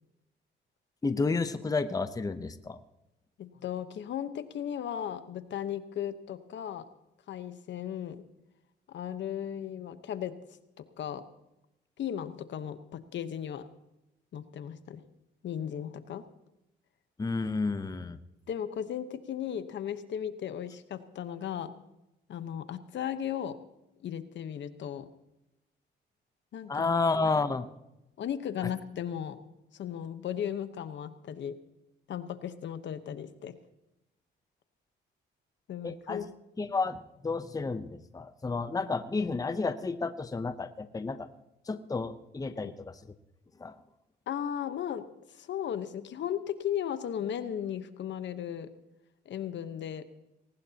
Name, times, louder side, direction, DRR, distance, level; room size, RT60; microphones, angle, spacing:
voice 1, 1.0-2.8 17.2-18.2 26.7-27.7 35.8-36.3 36.6-41.3 41.7-43.0 43.6-43.8, left 3 dB, 20° left, 11 dB, 0.8 m, -31 dB
voice 2, 3.4-6.8 7.3-8.2 8.9-10.3 10.8-11.2 12.0-13.6 14.3-15.0 15.4-16.2 18.5-21.7 22.3-23.5 24.0-25.1 26.5-26.9 28.2-29.4 29.7-31.6 32.1-33.5 35.7-36.3 42.5-42.7 44.3-45.0 45.3-48.7 49.3-50.0, left 9 dB, 65° left, 11 dB, 1.1 m, -36 dB
19.5 x 18.5 x 2.9 m, 0.93 s
cardioid pair, 90°, 20 cm